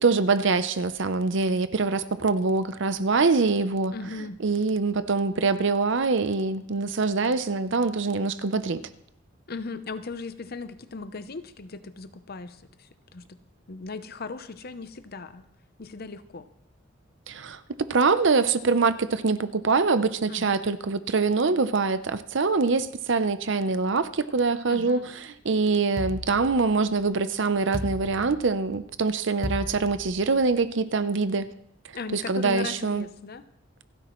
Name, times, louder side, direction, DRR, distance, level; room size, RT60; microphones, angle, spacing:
voice 1, 0.0-3.9 4.4-8.8 17.3-25.0 25.4-31.5 32.1-33.0, right 4 dB, 65° right, 12 dB, 0.7 m, -24 dB
voice 2, 3.9-4.4 9.5-13.4 13.7-15.5 15.8-16.5 20.3-20.6 24.7-25.1 31.9-33.4, left 3 dB, 50° left, 12 dB, 0.7 m, -38 dB
sound 1, 26.0-27.1 27.7-28.8 29.4-30.5, left 1 dB, 20° left, 1.0 m, -36 dB
27.5 x 9.9 x 3.1 m, 0.76 s
head